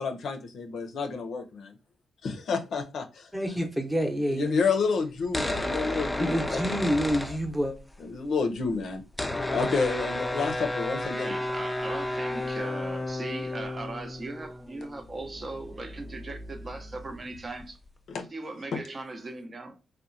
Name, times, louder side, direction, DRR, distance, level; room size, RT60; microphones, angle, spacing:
voice 1, 0.0-1.7 2.2-3.3 4.3-7.0 8.0-9.0 9.5-11.3 18.1-18.2 18.7-18.8, left 4 dB, 70° left, 0.5 m, -30 dB
voice 2, 3.3-4.6 6.2-7.8, equal, 5° right, 0.7 m, -28 dB
sound 1, 5.2-7.9 8.2-8.3 8.5-17.9, left 1 dB, 15° left, 0.3 m, -33 dB
voice 3, 11.1-17.8 18.3-19.8, right 2 dB, 40° right, 0.6 m, -39 dB
2.8 x 2.1 x 2.4 m
supercardioid pair, 55°, 0 cm